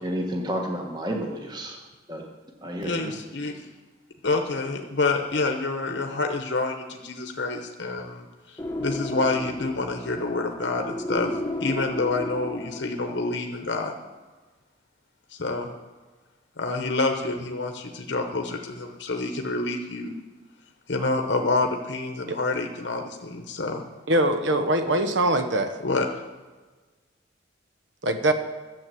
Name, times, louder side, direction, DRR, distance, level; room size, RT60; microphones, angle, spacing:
voice 1, 0.0-1.8 2.1-2.2 2.6-3.1, equal, 20° right, 1 dB, 1.3 m, -30 dB
voice 2, 2.8-3.7 4.2-11.3 11.6-13.9 15.3-15.7 16.6-20.1 20.9-23.8 25.8-26.1, left 3 dB, 60° left, 3 dB, 0.9 m, -28 dB
sound 1, 8.6-13.2, left 1 dB, 15° left, 1.0 m, -33 dB
voice 3, 24.1-25.7 28.0-28.3, right 1 dB, 65° right, 7 dB, 1.0 m, -22 dB
11.5 x 7.5 x 7.6 m, 1.3 s
head